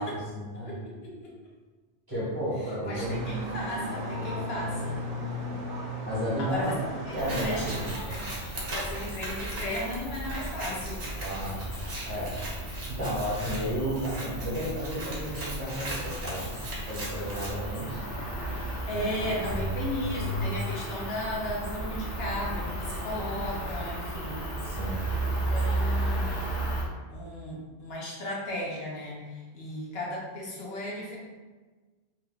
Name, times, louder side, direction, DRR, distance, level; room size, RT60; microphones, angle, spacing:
voice 1, 0.0-0.7 2.1-3.2 6.0-6.7 7.1-8.3 11.2-11.6 12.0-12.4 12.9-16.6 16.9-18.0 18.9-19.3 24.6-25.1, equal, 20° right, -10 dB, 1.1 m, -33 dB
voice 2, 0.6-1.3 2.8-5.0 6.4-6.7 7.1-7.2 7.4-11.0 18.9-24.4 25.1-25.2 25.5-26.5 27.1-31.2, left 1 dB, 65° left, -3 dB, 0.8 m, -35 dB
sound 1, 2.9-8.0, equal, 50° right, 0.7 m, -35 dB
Scissors, 7.1-17.5, right 1 dB, 65° right, 1.0 m, -39 dB
Cricket, 7.2-26.8, right 1 dB, 30° left, 1.0 m, -34 dB
3.5 x 3.0 x 2.3 m, 1.3 s
omnidirectional pair, 1.2 m